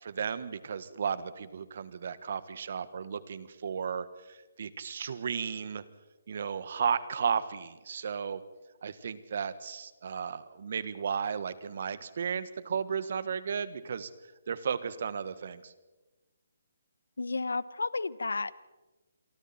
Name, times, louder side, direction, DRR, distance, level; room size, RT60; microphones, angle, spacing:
voice 1, 0.0-5.8 6.3-8.4 8.8-14.1 14.5-15.7, right 6 dB, 55° right, 14 dB, 1.6 m, -34 dB
voice 2, 17.2-18.5, left 3 dB, 85° left, 18 dB, 1.0 m, -32 dB
28.0 x 24.0 x 4.4 m, 1.1 s
hypercardioid pair, 155°, 0 cm